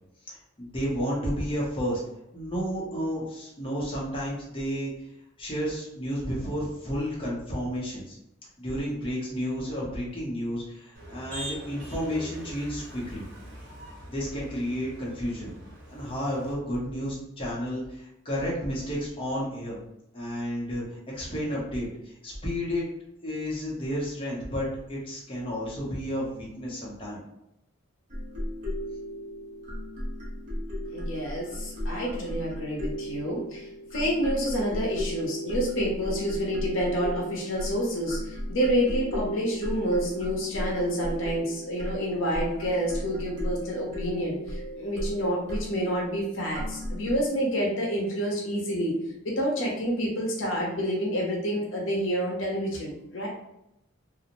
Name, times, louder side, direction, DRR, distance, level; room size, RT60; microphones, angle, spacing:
voice 1, 0.3-2.0 2.3-4.9 5.4-8.2 8.6-13.2 14.1-15.5 15.9-19.8 20.1-22.8 23.2-27.2, equal, 25° left, -6 dB, 0.7 m, -31 dB
Motor vehicle (road), 10.9-16.5, right 1 dB, 55° right, 1.1 m, -43 dB
sound 1, 28.1-47.3, equal, 40° right, 0.9 m, -35 dB
voice 2, 30.9-48.9 49.2-53.3, equal, 70° left, -2 dB, 0.7 m, -28 dB
2.5 x 2.0 x 2.9 m, 0.85 s
head